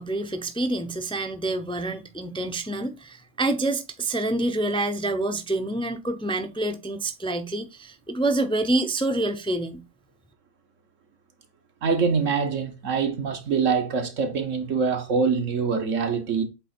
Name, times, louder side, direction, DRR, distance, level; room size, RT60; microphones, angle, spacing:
voice 1, 0.0-9.8, right 2 dB, 10° left, 0.3 m, -27 dB
voice 2, 11.8-16.4, right 5 dB, 80° right, 1.5 m, -24 dB
7.9 x 3.3 x 4.3 m
omnidirectional pair, 1.3 m